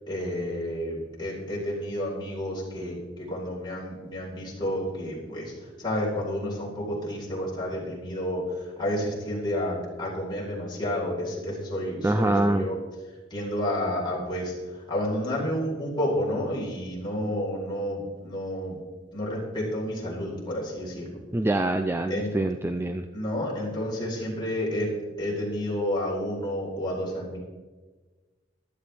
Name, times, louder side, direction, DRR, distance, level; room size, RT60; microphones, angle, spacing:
voice 1, 0.1-5.5 5.8-8.4 8.8-12.7 13.3-14.5 14.9-18.8 19.1-21.2 22.1-22.3 23.1-24.9 25.2-27.4, left 1 dB, 25° left, -5 dB, 4.2 m, -30 dB
voice 2, 12.0-12.7 21.3-23.1, right 2 dB, 15° right, 7 dB, 0.4 m, -25 dB
15.0 x 12.5 x 3.4 m, 1.3 s
head